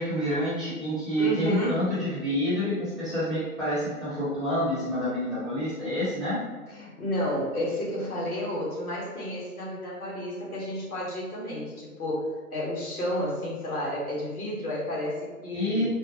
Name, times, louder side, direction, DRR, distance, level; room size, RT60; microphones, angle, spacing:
voice 1, 0.0-6.4 15.5-15.9, equal, 10° right, -12 dB, 0.9 m, -28 dB
voice 2, 1.2-1.8 6.7-15.9, left 1 dB, 75° left, -5 dB, 1.4 m, -31 dB
4.3 x 2.0 x 2.7 m, 1.3 s
figure-of-eight pair, 120°, 45 cm